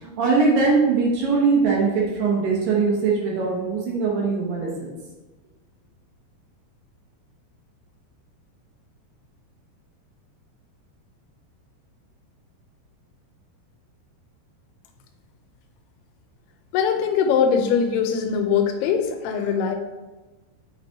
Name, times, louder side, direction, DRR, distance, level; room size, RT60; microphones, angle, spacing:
voice 1, 0.0-4.7, right 4 dB, 65° right, -3 dB, 2.9 m, -21 dB
voice 2, 16.7-19.8, left 6 dB, 80° left, 5 dB, 2.6 m, -21 dB
8.0 x 6.0 x 2.9 m, 1.2 s
omnidirectional pair, 4.7 m